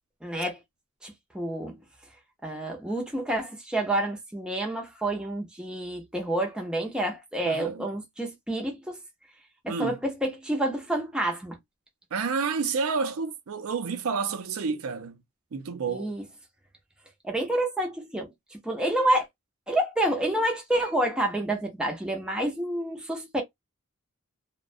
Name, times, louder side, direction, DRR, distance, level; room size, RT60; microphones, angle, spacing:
voice 1, 0.2-0.6 1.0-1.8 2.4-9.0 9.8-11.6 15.9-16.2 17.2-18.3 18.6-19.3 19.7-23.4, right 1 dB, 5° right, 0.5 m, -28 dB
voice 2, 7.4-7.9 9.7-10.0 12.1-15.2 15.5-16.1, right 5 dB, 80° right, 0.5 m, -29 dB
2.4 x 2.1 x 2.4 m
head